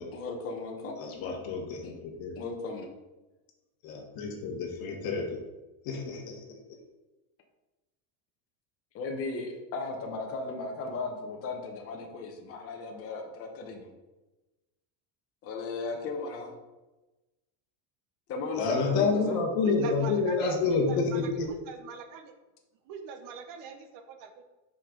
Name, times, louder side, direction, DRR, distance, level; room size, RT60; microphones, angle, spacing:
voice 1, 0.1-1.0 1.8-1.9 2.4-2.9 8.9-13.9 15.4-16.5 18.3-19.4, left 3 dB, 30° left, 2 dB, 0.9 m, -36 dB
voice 2, 1.0-1.9 2.2-2.4 3.8-5.3 5.8-6.4 18.5-21.5, left 4 dB, 50° left, 1 dB, 1.3 m, -28 dB
voice 3, 19.6-22.3 22.9-24.4, right 5 dB, 45° right, 7 dB, 0.8 m, -41 dB
5.5 x 5.3 x 3.8 m, 1.1 s
cardioid pair, 160°, 46 cm